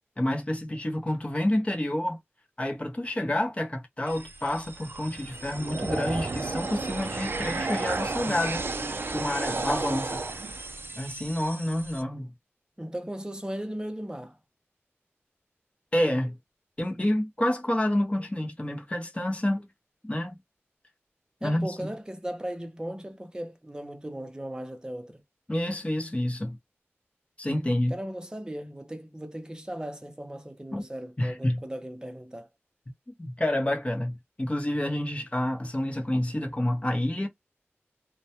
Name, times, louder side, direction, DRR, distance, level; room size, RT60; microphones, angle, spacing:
voice 1, 0.2-2.2 2.6-8.6 9.1-10.2 11.0-12.3 15.9-16.3 16.8-19.7 20.0-20.4 21.4-21.9 25.5-26.6 27.4-27.9 30.7-30.8 31.2-31.6 33.2-37.3, left 1 dB, 25° left, 0.7 m, -28 dB
sattlight spectrogram image, 4.1-12.0, right 3 dB, 55° right, 0.4 m, -33 dB
voice 2, 12.8-14.4 21.4-25.2 27.9-32.5, right 1 dB, 15° right, 0.6 m, -37 dB
2.2 x 2.2 x 2.8 m
wide cardioid pair, 70°, 5 cm